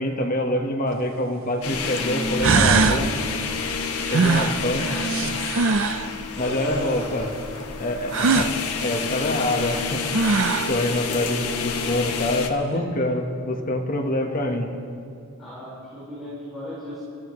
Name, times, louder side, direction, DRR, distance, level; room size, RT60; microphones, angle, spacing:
voice 1, 0.0-3.1 4.1-4.8 5.2-5.3 6.4-7.3 7.8-8.5 8.8-10.0 10.7-14.7, left 1 dB, 40° left, 3 dB, 1.4 m, -25 dB
sound 1, 0.9-1.0 2.0-2.1 2.4-3.0 4.1-6.1 8.1-8.5 9.8-9.9 10.1-10.8, right 4 dB, 60° right, 0.6 m, -21 dB
sound 2, 1.6-12.5, left 4 dB, 75° left, 1.2 m, -29 dB
voice 2, 6.3-7.4 11.1-11.6 12.7-12.9 15.4-17.0, equal, ahead, -13 dB, 5.0 m, -37 dB
29.5 x 14.5 x 3.2 m, 2.5 s
head